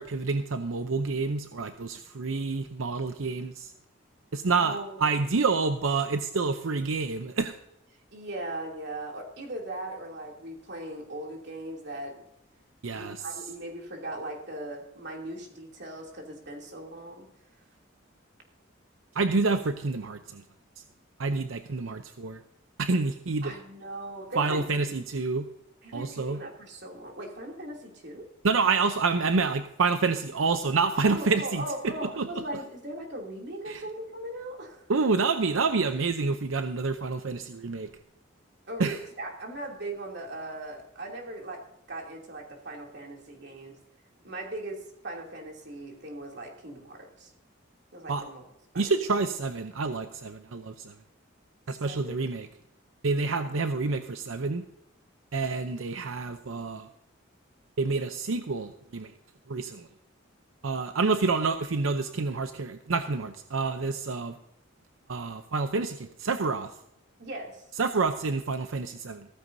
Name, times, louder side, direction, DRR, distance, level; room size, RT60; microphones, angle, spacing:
voice 1, 0.0-3.7 4.3-7.6 12.8-13.2 19.1-20.4 21.2-22.4 22.8-23.5 24.4-25.5 25.9-26.4 28.4-32.3 33.7-33.8 34.9-37.9 38.8-39.0 48.1-48.2 48.8-50.9 51.7-52.5 53.0-54.6 55.3-56.9 57.8-59.1 59.5-59.9 60.6-64.3 65.1-66.7 67.8-69.3, right 4 dB, 90° right, 8 dB, 0.7 m, -28 dB
voice 2, 4.6-5.2 8.1-12.2 12.9-17.3 23.4-24.6 25.8-28.3 31.1-34.8 38.7-43.8 44.2-47.3 47.9-48.5 48.7-48.9 51.7-52.2 67.2-67.7, right 1 dB, 55° right, 0 dB, 2.9 m, -39 dB
15.5 x 14.0 x 2.7 m, 0.80 s
head